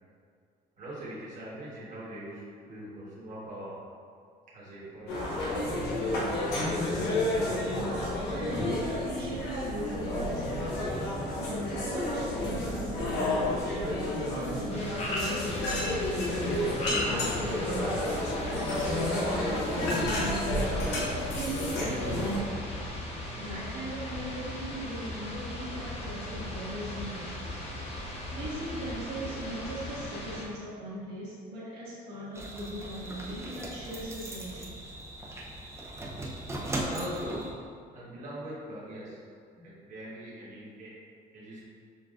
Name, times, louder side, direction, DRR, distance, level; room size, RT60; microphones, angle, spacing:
voice 1, 0.8-3.8 4.5-6.1 36.7-37.5 37.9-39.2 39.5-40.9 41.3-41.7, right 1 dB, 50° right, -8 dB, 1.4 m, -42 dB
sound 1, 5.1-22.4, left 1 dB, 85° left, 0.8 m, -31 dB
voice 2, 8.3-13.8 14.3-16.5 16.9-20.9 21.3-22.9 23.4-27.6 28.3-34.7, right 1 dB, 70° right, -9 dB, 1.4 m, -39 dB
lizzie frogs long, 14.7-30.4, left 1 dB, 40° left, 0.8 m, -38 dB
sound 2, 32.3-37.5, right 1 dB, 15° right, 0.6 m, -38 dB
6.9 x 2.3 x 2.4 m, 2.2 s
cardioid pair, 110°, 17 cm